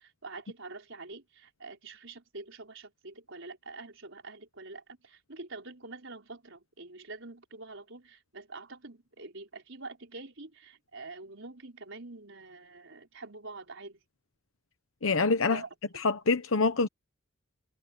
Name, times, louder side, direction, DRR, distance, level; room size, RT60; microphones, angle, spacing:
voice 1, 0.0-14.0 15.5-16.0, right 3 dB, 65° right, 5.2 m, -46 dB
voice 2, 15.0-15.6 16.0-16.9, left 4 dB, 70° left, 0.9 m, -25 dB
head